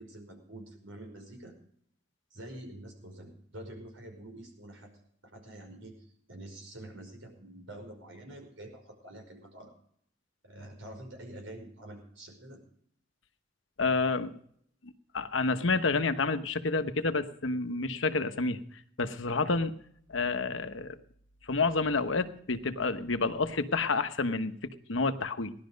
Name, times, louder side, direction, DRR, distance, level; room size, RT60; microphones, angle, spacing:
voice 1, 0.0-1.5 2.3-4.9 5.2-9.7 10.4-12.6, right 1 dB, 85° right, 4 dB, 5.3 m, -47 dB
voice 2, 13.8-14.4 14.8-19.7 20.1-21.0 21.4-24.5 24.9-25.5, left 3 dB, 75° left, 9 dB, 1.1 m, -29 dB
18.0 x 12.0 x 5.3 m, 0.65 s
head